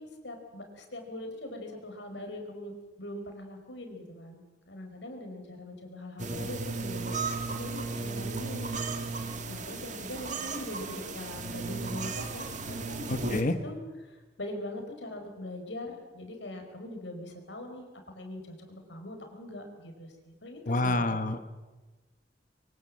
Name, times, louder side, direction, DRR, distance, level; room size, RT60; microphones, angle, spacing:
voice 1, 0.0-7.1 7.5-8.8 9.5-13.8 14.1-17.9 18.1-21.3, left 1 dB, 80° left, 4 dB, 4.9 m, -42 dB
sound 1, 6.2-13.4, right 3 dB, 45° right, 2.2 m, -35 dB
voice 2, 13.1-13.5 20.7-21.5, left 2 dB, 45° left, 9 dB, 1.2 m, -28 dB
25.0 x 23.0 x 7.7 m, 1.2 s
head